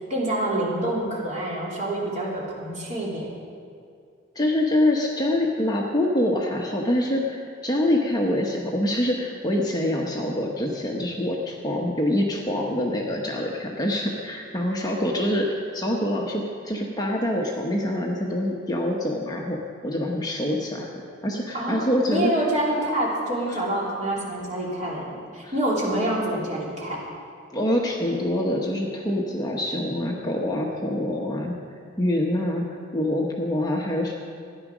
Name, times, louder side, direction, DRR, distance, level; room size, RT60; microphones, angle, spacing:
voice 1, 0.1-3.3 21.5-27.0, right 1 dB, 35° right, -5 dB, 3.1 m, -27 dB
voice 2, 4.3-15.5 15.7-20.9 21.2-22.3 23.5-23.6 25.4-25.5 27.5-31.5 32.0-32.7 32.9-34.1, left 1 dB, 20° left, -1 dB, 1.0 m, -25 dB
14.0 x 10.0 x 6.2 m, 2.3 s
head